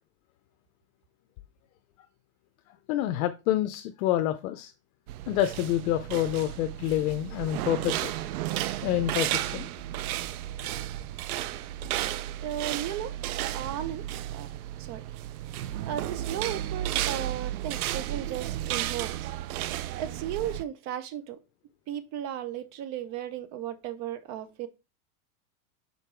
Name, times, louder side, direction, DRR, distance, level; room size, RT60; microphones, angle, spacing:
voice 1, 2.9-4.7 5.3-8.1 8.8-9.7, left 12 dB, 65° left, 0.7 m, -27 dB
sound 1, 5.1-20.6, right 13 dB, 70° right, 0.6 m, -33 dB
voice 2, 12.4-13.1 13.5-14.0 14.3-14.5 14.8-15.0 15.5-19.3 19.7-21.4 21.9-24.7, right 10 dB, 35° right, 0.8 m, -35 dB
5.6 x 3.8 x 4.4 m
supercardioid pair, 135°, 45 cm